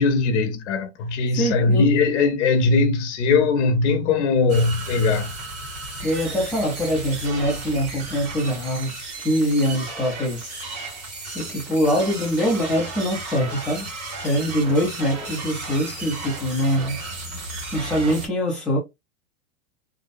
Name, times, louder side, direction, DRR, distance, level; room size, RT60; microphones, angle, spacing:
voice 1, 0.0-5.3, left 4 dB, 70° left, 0.7 m, -20 dB
voice 2, 1.3-1.9 6.0-10.5 11.3-17.0 17.7-18.8, equal, ahead, 0.4 m, -24 dB
sound 1, 4.5-18.3, right 2 dB, 35° right, 1.4 m, -34 dB
2.6 x 2.0 x 2.4 m
supercardioid pair, 165°, 36 cm